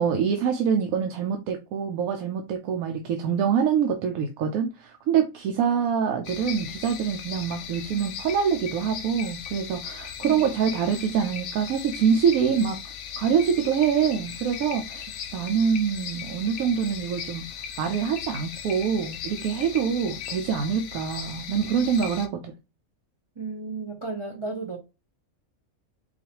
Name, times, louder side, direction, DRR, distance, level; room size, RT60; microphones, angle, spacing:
voice 1, 0.0-12.8 13.2-17.4 17.8-22.5, right 7 dB, 85° right, 1.0 m, -25 dB
sound 1, 6.2-22.3, left 8 dB, 65° left, 0.8 m, -38 dB
voice 2, 10.2-10.5 23.4-24.8, right 3 dB, 45° right, 0.4 m, -34 dB
4.1 x 2.4 x 2.8 m
omnidirectional pair, 1.5 m